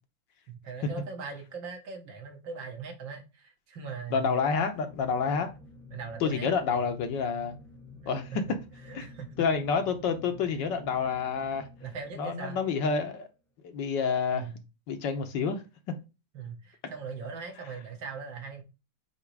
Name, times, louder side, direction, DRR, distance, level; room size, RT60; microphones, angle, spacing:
voice 1, 0.5-4.4 5.9-6.9 8.9-9.4 11.8-12.6 14.3-14.6 16.3-18.6, right 5 dB, 75° right, 2.1 m, -40 dB
voice 2, 4.1-5.5 6.2-7.6 8.1-8.6 8.9-9.1 9.4-11.6 12.2-13.3 13.6-14.5 14.9-16.0, left 5 dB, 70° left, 1.6 m, -28 dB
sound 1, 4.4-12.7, left 3 dB, 5° left, 0.3 m, -50 dB
8.3 x 3.0 x 4.7 m
omnidirectional pair, 2.1 m